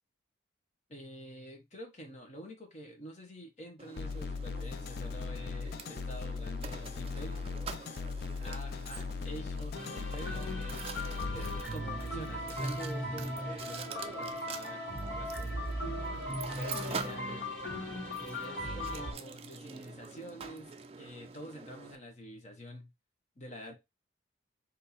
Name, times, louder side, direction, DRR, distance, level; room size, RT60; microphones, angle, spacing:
voice 1, 0.9-7.4 8.4-10.9 11.3-14.9 15.2-15.7 16.4-17.5 18.2-20.7 21.0-22.9 23.4-23.7, equal, 35° left, 1.1 m, -47 dB
Mechanisms, 3.8-21.9, right 5 dB, 30° right, 0.3 m, -46 dB
sound 1, 4.0-11.6, left 4 dB, 55° left, 0.3 m, -38 dB
sound 2, 9.7-19.1, equal, 70° left, 1.5 m, -38 dB
4.2 x 2.7 x 4.2 m
head